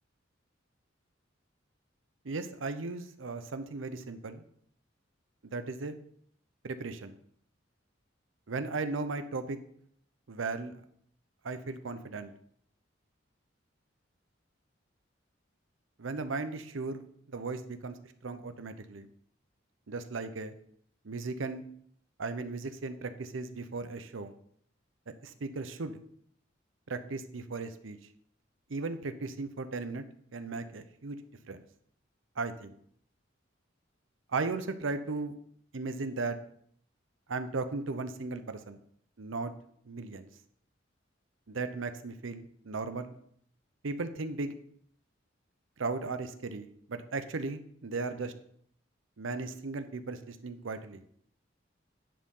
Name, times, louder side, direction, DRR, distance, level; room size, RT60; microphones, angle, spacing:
voice 1, 2.2-4.4 5.4-5.9 6.6-7.1 8.5-9.6 10.3-10.7 11.4-12.3 16.0-19.1 19.9-20.5 21.0-21.6 22.2-24.3 25.2-26.0 26.9-28.0 28.7-30.0 30.3-31.2 31.4-31.6 32.4-32.8 34.3-35.3 35.7-36.4 37.3-38.8 39.2-39.5 39.9-40.3 41.5-43.2 43.8-44.5 45.8-48.3 49.2-51.0, right 3 dB, 80° right, 10 dB, 0.7 m, -36 dB
10.0 x 4.5 x 5.4 m, 0.64 s
head